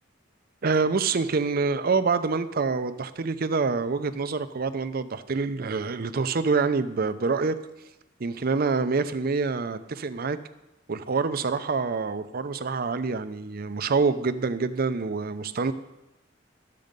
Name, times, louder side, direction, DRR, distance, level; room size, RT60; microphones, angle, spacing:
voice 1, 0.6-7.6 8.2-10.4 10.9-15.7, right 4 dB, 50° right, 11 dB, 0.5 m, -26 dB
12.0 x 7.6 x 5.2 m, 0.98 s
head